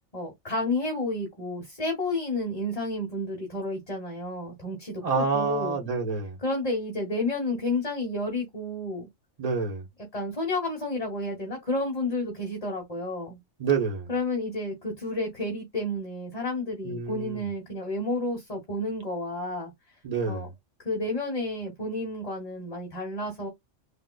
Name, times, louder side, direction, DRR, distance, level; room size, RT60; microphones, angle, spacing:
voice 1, 0.1-5.8 6.4-9.1 10.1-13.4 14.1-19.7 20.3-20.5 20.8-23.5, left 2 dB, 30° left, 1.2 m, -31 dB
voice 2, 5.0-6.4 9.4-9.9 13.6-14.1 16.8-17.4 20.0-20.5, right 5 dB, 35° right, 0.9 m, -28 dB
3.6 x 2.5 x 2.2 m
omnidirectional pair, 1.3 m